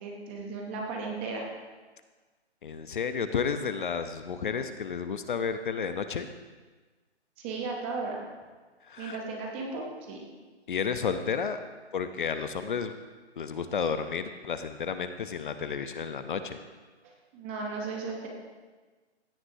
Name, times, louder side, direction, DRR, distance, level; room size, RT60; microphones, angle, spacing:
voice 1, 0.0-1.4 7.4-8.2 9.0-10.2 17.0-18.3, right 4 dB, 10° right, 0 dB, 0.7 m, -35 dB
voice 2, 2.6-6.3 8.9-9.2 10.7-11.6 11.9-12.9 13.4-16.6, left 6 dB, 45° left, 10 dB, 0.7 m, -32 dB
16.0 x 9.5 x 2.7 m, 1.3 s
hypercardioid pair, 160°, 34 cm